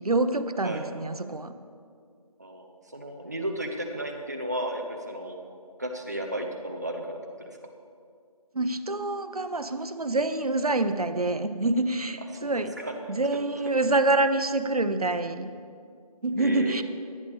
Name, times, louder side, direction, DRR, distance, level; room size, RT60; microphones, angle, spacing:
voice 1, 0.0-1.5 8.5-12.8 13.1-15.5 16.2-16.8, right 2 dB, 70° right, 10 dB, 0.9 m, -26 dB
voice 2, 2.4-5.4 5.8-7.6 12.4-12.9 16.4-16.8, right 1 dB, 25° right, 2 dB, 0.7 m, -34 dB
18.0 x 12.0 x 3.5 m, 2.3 s
figure-of-eight pair, 170°, 20 cm